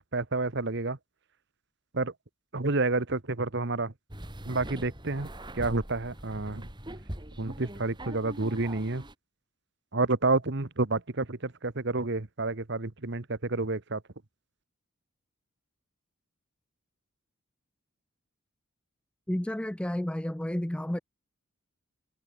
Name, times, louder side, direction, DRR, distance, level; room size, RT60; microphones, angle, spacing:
voice 1, 0.1-1.0 1.9-2.1 2.5-3.9 4.5-6.7 7.4-9.0 9.9-14.0, right 3 dB, 55° right, 1.3 m, -29 dB
sound 1, 4.1-9.1, right 1 dB, 20° right, 2.8 m, -42 dB
voice 2, 19.3-21.0, left 1 dB, 5° left, 0.3 m, -31 dB
head